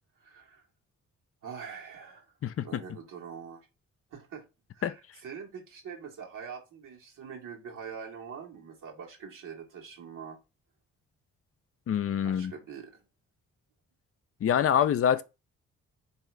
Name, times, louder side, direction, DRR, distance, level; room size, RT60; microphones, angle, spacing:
voice 1, 0.2-0.6 1.4-2.3 2.6-3.7 4.1-4.4 4.7-10.4 12.2-13.0, right 6 dB, 75° right, 1.4 m, -44 dB
voice 2, 2.4-2.8 4.8-5.0 11.9-12.5 14.4-15.2, left 9 dB, 45° left, 0.5 m, -26 dB
3.8 x 2.8 x 3.2 m
supercardioid pair, 50°, 32 cm